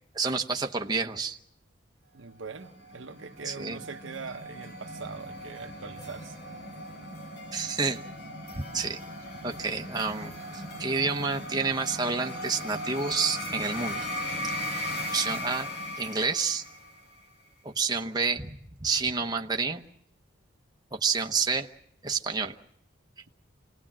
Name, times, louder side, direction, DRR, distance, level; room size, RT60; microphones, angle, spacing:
voice 1, 0.1-1.4 3.5-3.8 7.5-8.0 8.5-9.0 9.4-14.1 14.4-14.5 15.1-15.7 16.0-16.6 17.6-19.8 20.9-21.7 22.0-22.5, right 4 dB, 20° right, 1.0 m, -29 dB
voice 2, 2.1-6.4 8.7-8.8, right 4 dB, 80° right, 1.0 m, -42 dB
sound 1, 2.5-17.1, left 1 dB, 60° left, 4.7 m, -38 dB
27.0 x 19.0 x 7.5 m
head